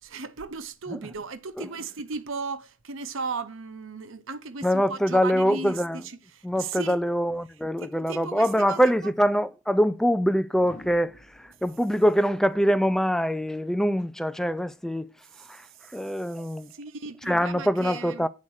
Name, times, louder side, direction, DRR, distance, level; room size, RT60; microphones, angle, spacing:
voice 1, 0.0-7.0 7.8-8.9 15.5-15.6 16.7-18.3, right 4 dB, 65° right, 0.7 m, -36 dB
voice 2, 4.6-6.0 6.4-15.1 15.5-16.7 17.2-18.3, equal, ahead, 0.3 m, -24 dB
sound 1, 9.1-9.2 10.5-13.6 15.2-15.5, left 2 dB, 35° left, 1.0 m, -52 dB
8.5 x 4.3 x 6.3 m
head